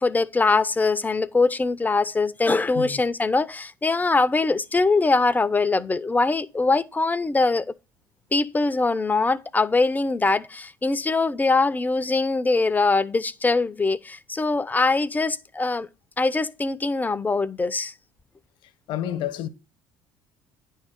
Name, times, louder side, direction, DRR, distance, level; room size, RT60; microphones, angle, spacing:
voice 1, 0.0-7.7 8.3-15.9 16.2-17.9, left 3 dB, 20° left, 0.7 m, -22 dB
voice 2, 18.6-19.5, left 11 dB, 60° left, 1.1 m, -30 dB
10.5 x 3.8 x 7.3 m
hypercardioid pair, 60°, 9 cm